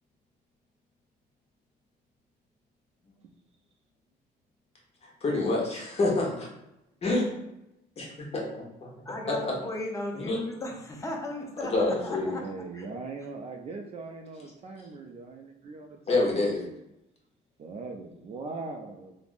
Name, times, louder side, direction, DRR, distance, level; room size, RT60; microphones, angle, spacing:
voice 1, 5.0-6.5 7.0-7.4 8.0-8.9 9.3-9.4 10.1-10.4 11.6-12.4 16.1-16.7, left 2 dB, 35° left, -3 dB, 0.9 m, -28 dB
voice 2, 9.0-12.4 12.7-12.9, left 1 dB, 20° left, 0 dB, 0.6 m, -36 dB
voice 3, 11.8-16.3 17.6-19.1, right 3 dB, 40° right, 3 dB, 0.3 m, -40 dB
3.3 x 2.0 x 2.5 m, 0.86 s
cardioid pair, 110°, 17 cm